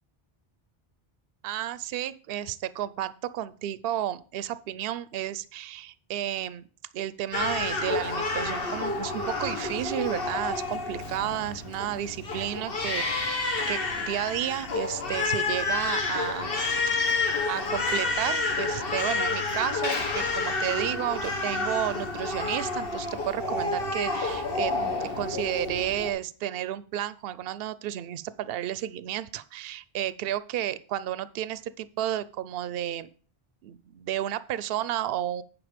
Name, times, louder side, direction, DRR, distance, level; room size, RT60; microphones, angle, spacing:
voice 1, 1.4-6.6 6.9-13.4 13.7-16.6 16.9-24.7 25.2-33.1 33.6-35.4, right 12 dB, 70° right, 16 dB, 0.7 m, -32 dB
Crying sobbing, 7.3-26.1, left 3 dB, 60° left, 1.4 m, -29 dB
9.5 x 5.2 x 5.1 m, 0.42 s
omnidirectional pair, 1.1 m